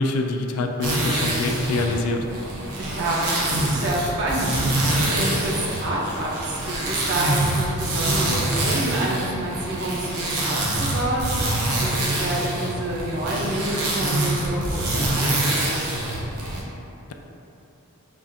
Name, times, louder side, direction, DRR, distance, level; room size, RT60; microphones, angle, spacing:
voice 1, 0.0-2.2, left 2 dB, 80° left, 4 dB, 0.3 m, -25 dB
sound 1, 0.8-16.6, right 1 dB, 85° right, 0.7 m, -25 dB
voice 2, 2.8-15.3, right 1 dB, 50° right, -3 dB, 0.6 m, -28 dB
5.3 x 2.4 x 2.6 m, 2.8 s
head